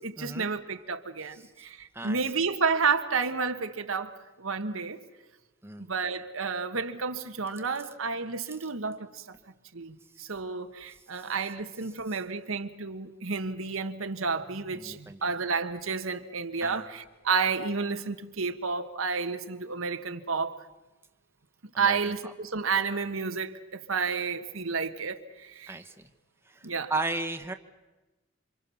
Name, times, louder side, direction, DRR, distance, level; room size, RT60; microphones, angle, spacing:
voice 1, 0.0-5.0 5.9-9.4 9.7-20.6 21.8-25.8 26.6-26.9, right 5 dB, 90° right, 1.5 m, -31 dB
voice 2, 14.7-15.3 16.6-16.9 21.7-22.3 25.7-25.9 26.5-26.6 26.9-27.5, right 3 dB, 10° right, 1.2 m, -35 dB
28.0 x 26.0 x 7.2 m
head